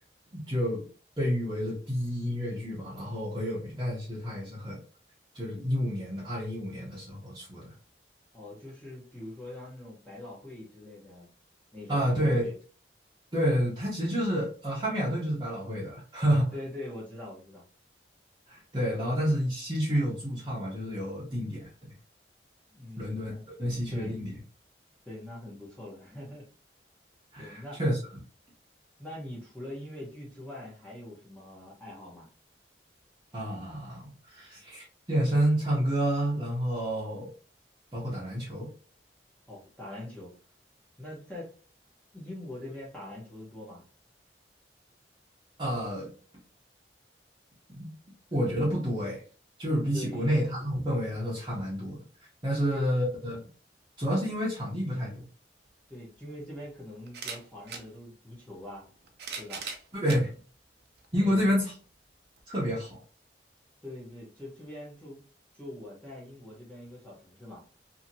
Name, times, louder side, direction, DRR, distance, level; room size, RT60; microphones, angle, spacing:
voice 1, 0.3-0.8 1.2-4.8 5.3-7.7 11.9-12.5 13.3-16.5 18.5-21.7 23.0-23.3 23.6-24.3 27.3-28.0 33.3-37.3 37.9-38.7 45.6-46.1 47.8-47.9 48.3-49.2 49.6-52.0 52.4-53.4 54.0-55.3 60.0-60.3 61.1-61.7 62.5-63.0, equal, 25° right, -7 dB, 0.8 m, -29 dB
voice 2, 8.3-11.3 11.7-12.5 16.5-17.6 19.0-19.1 22.7-24.2 25.1-26.4 27.4-27.8 29.0-32.3 39.5-40.3 41.0-41.5 42.1-43.8 49.9-50.3 52.6-53.0 55.9-58.9 59.4-59.6 61.2-61.6 63.8-65.2 65.5-67.6, left 1 dB, 10° left, -4 dB, 0.8 m, -43 dB
sound 1, 55.7-55.8 57.1-57.9 58.9-60.2 61.0-61.1 62.4-62.5, right 5 dB, 60° right, 0.6 m, -39 dB
2.8 x 2.7 x 2.6 m, 0.38 s
head